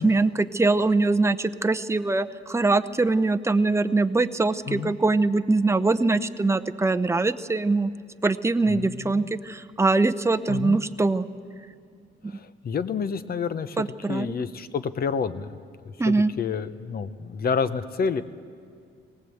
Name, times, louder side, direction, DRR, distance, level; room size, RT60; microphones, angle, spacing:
voice 1, 0.0-7.9 8.2-11.3 12.2-12.3 13.8-14.3 16.0-16.3, right 3 dB, 15° right, 10 dB, 0.7 m, -23 dB
voice 2, 8.7-9.3 10.5-10.8 12.3-18.2, left 5 dB, 50° left, 12 dB, 0.9 m, -29 dB
19.0 x 19.0 x 8.0 m, 2.2 s
cardioid pair, 90°, 20 cm